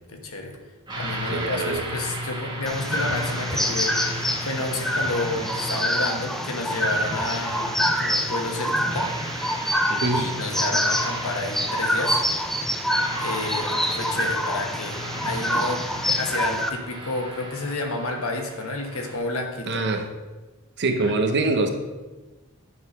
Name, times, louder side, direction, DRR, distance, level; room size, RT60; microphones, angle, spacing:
voice 1, 0.1-0.5 1.0-9.1 10.1-12.2 13.2-15.8 16.2-19.8 21.0-21.2, left 2 dB, 75° left, 3 dB, 1.3 m, -30 dB
sound 1, 0.9-19.2, equal, 20° right, 1.7 m, -35 dB
voice 2, 1.3-1.8 9.9-10.3 19.7-20.1 20.8-21.7, right 3 dB, 50° right, 6 dB, 0.8 m, -24 dB
sound 2, 2.7-16.7, equal, ahead, 0.5 m, -26 dB
9.5 x 4.2 x 5.4 m, 1.2 s
head